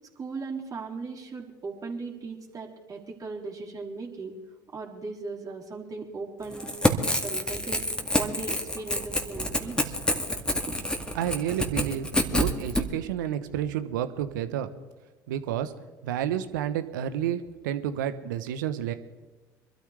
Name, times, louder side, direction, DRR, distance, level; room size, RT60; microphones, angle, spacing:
voice 1, 0.2-4.4 4.7-6.7 7.2-7.8 8.2-9.9 10.7-10.8, right 4 dB, 35° right, -2 dB, 3.8 m, -37 dB
Crackle / Tearing, 6.5-12.8, left 1 dB, 10° left, 2.0 m, -27 dB
voice 2, 11.1-14.7 15.3-15.7 16.0-18.9, right 10 dB, 80° right, 11 dB, 1.0 m, -30 dB
25.0 x 13.0 x 3.3 m, 1.2 s
hypercardioid pair, 60°, 10 cm